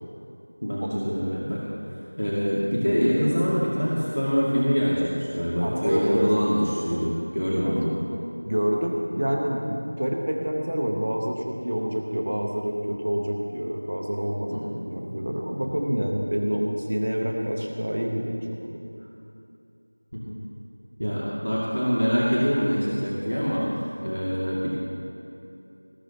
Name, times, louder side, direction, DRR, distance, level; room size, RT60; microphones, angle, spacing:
voice 1, 0.6-1.6 2.2-8.0 14.5-14.6 20.1-20.4 21.0-24.7, equal, 70° left, -6 dB, 2.3 m, -25 dB
voice 2, 5.6-6.3 7.6-7.7 8.5-18.8 21.0-21.2, equal, 20° right, 1 dB, 0.8 m, -27 dB
19.5 x 13.0 x 3.0 m, 2.7 s
figure-of-eight pair, 180°, 0 cm